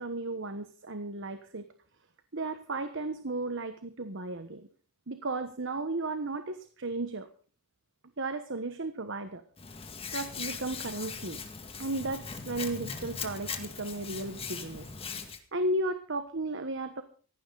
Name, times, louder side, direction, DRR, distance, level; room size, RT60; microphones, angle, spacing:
voice 1, 0.0-1.7 2.3-4.7 5.1-7.3 8.2-9.4 10.1-11.4 11.8-14.8 15.5-17.0, right 2 dB, 55° right, 9 dB, 1.2 m, -34 dB
Hands, 9.6-15.4, left 5 dB, 25° left, 2.0 m, -40 dB
17.5 x 15.0 x 4.0 m, 0.42 s
head